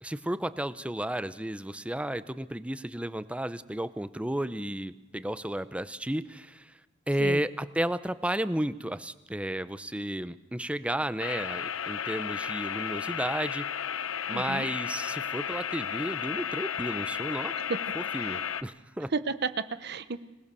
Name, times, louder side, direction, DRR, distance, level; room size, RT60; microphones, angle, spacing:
voice 1, 0.0-6.7 7.1-13.7 14.3-17.5 17.9-19.1, right 1 dB, 5° right, 14 dB, 0.6 m, -33 dB
sound 1, 11.2-18.6, left 8 dB, 85° left, 0.7 m, -33 dB
voice 2, 14.3-14.7 19.1-20.2, right 4 dB, 55° right, 13 dB, 0.8 m, -32 dB
25.0 x 18.5 x 6.9 m, 1.1 s
head